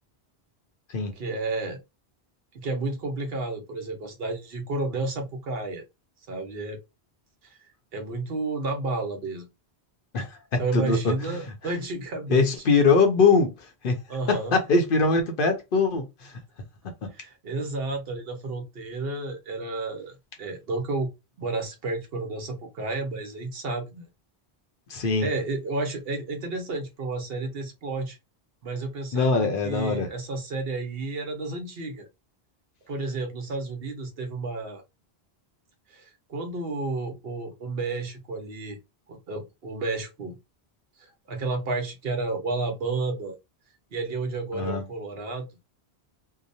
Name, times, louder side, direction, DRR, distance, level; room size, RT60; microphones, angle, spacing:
voice 1, 1.1-1.8 2.5-5.8 6.3-6.8 7.4-7.6 7.9-9.5 10.6-12.8 14.1-14.5 17.1-21.1 21.4-24.1 25.2-28.2 28.6-32.1 32.9-34.8 35.9-38.8 39.1-40.4 41.3-43.4 43.9-45.5, right 3 dB, 65° right, 1.0 m, -31 dB
voice 2, 10.1-11.4 12.3-13.5 13.8-14.0 14.3-16.4 17.0-17.1 24.9-25.3 29.1-30.1 44.5-44.8, left 4 dB, 60° left, 0.8 m, -22 dB
2.8 x 2.0 x 2.6 m
omnidirectional pair, 1.1 m